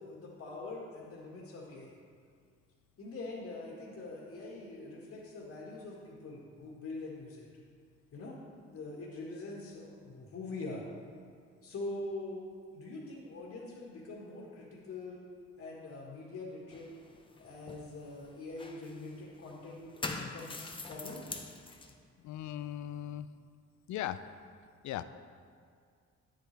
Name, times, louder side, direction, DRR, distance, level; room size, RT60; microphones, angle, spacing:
voice 1, 0.0-1.9 3.0-7.5 8.1-10.8 11.6-12.4 12.7-15.3 15.6-16.9 17.4-21.2, left 2 dB, 55° left, -7 dB, 1.8 m, -44 dB
sound 1, 16.7-21.9, left 3 dB, 15° left, 0.7 m, -44 dB
voice 2, 22.2-23.3 23.9-24.2 24.8-25.0, left 12 dB, 75° left, 12 dB, 0.5 m, -38 dB
9.8 x 8.0 x 3.3 m, 2.1 s
cardioid pair, 90°, 30 cm